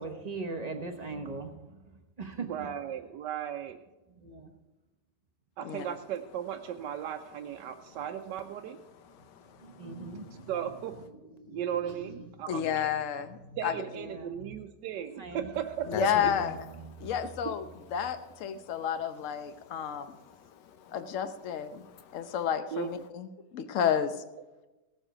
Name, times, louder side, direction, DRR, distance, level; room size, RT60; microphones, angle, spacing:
voice 1, 0.0-1.7 2.2-2.7 4.2-4.5 9.8-10.5 11.4-12.1 13.4-13.6 13.9-14.6 15.2-15.6 16.7-17.2, right 3 dB, 30° right, 0.8 m, -40 dB
voice 2, 2.4-3.8 5.6-8.8 10.5-11.0 11.5-12.8 13.6-16.1 17.4-17.5 22.7-22.9, right 10 dB, 85° right, 1.2 m, -36 dB
voice 3, 9.1-10.5 15.9-16.5 17.0-17.1 18.6-18.9 19.4-21.0 21.7-22.3, left 8 dB, 85° left, 1.5 m, -44 dB
voice 4, 12.5-13.8 15.9-16.5 17.0-20.2 20.9-21.9 22.1-23.3 23.5-24.2, left 9 dB, 55° left, 1.0 m, -31 dB
16.5 x 7.1 x 5.0 m
omnidirectional pair, 1.8 m